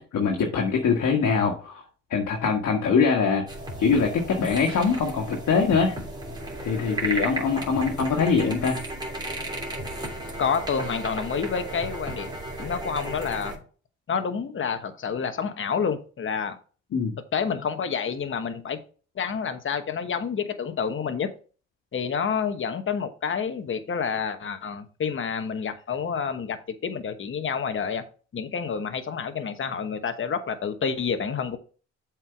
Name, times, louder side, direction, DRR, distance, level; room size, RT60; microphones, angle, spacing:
voice 1, 0.1-1.8 2.1-3.4 3.8-6.0 6.6-8.8 16.9-17.1, left 5 dB, 65° left, 1.7 m, -23 dB
sound 1, 3.5-13.6, right 1 dB, 15° right, 3.0 m, -34 dB
voice 2, 10.4-12.3 12.6-13.6 14.1-16.6 17.3-18.8 19.2-21.3 21.9-28.0 28.3-31.6, left 6 dB, 40° left, 1.1 m, -28 dB
7.5 x 4.7 x 4.6 m
cardioid pair, 90°, 30 cm